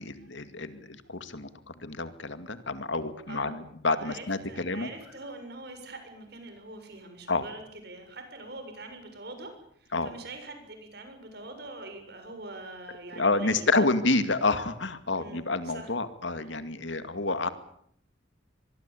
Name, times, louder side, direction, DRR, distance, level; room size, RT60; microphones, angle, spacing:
voice 1, 0.0-4.9 7.3-7.4 9.9-10.1 13.2-17.5, left 3 dB, 75° left, 11 dB, 2.3 m, -29 dB
voice 2, 3.3-3.6 3.9-13.9 15.1-15.9, right 2 dB, 55° right, 6 dB, 7.1 m, -44 dB
25.0 x 22.5 x 8.6 m, 0.68 s
head